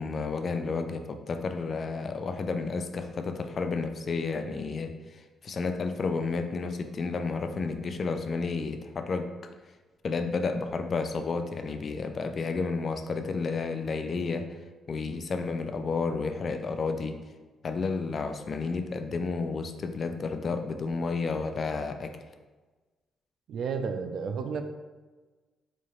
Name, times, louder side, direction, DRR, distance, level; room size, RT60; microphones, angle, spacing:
voice 1, 0.0-9.3 10.0-14.5 14.9-17.2 17.6-22.1, left 4 dB, 45° left, 7 dB, 0.3 m, -31 dB
voice 2, 23.5-24.6, right 5 dB, 65° right, 7 dB, 0.4 m, -32 dB
4.3 x 2.7 x 3.0 m, 1.3 s
cardioid pair, 90°, 0 cm